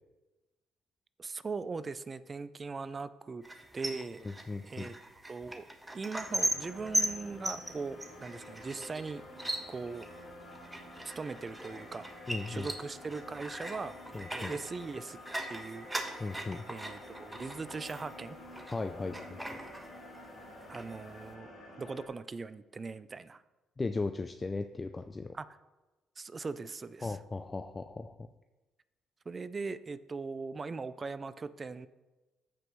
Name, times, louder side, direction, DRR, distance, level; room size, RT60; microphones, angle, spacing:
voice 1, 1.2-3.4 3.7-4.2 4.6-4.9 5.3-5.6 5.9-9.2 9.7-10.1 11.0-12.1 12.5-15.2 15.5-16.4 16.7-18.4 20.7-21.5 21.8-23.4 25.3-25.5 26.2-27.2 29.3-31.9, right 4 dB, 35° right, 15 dB, 0.5 m, -40 dB
sound 1, 3.4-18.8 19.1-20.3 20.6-21.3, right 1 dB, 10° right, 1.3 m, -39 dB
voice 2, 4.2-4.9 12.3-12.7 14.1-14.5 16.2-16.6 18.7-19.6 23.8-25.4 27.0-28.3, left 3 dB, 25° left, 8 dB, 0.4 m, -37 dB
sound 2, 6.2-22.1, left 1 dB, 55° left, 3.2 m, -50 dB
14.0 x 5.2 x 3.2 m, 1.1 s
supercardioid pair, 70°, 0 cm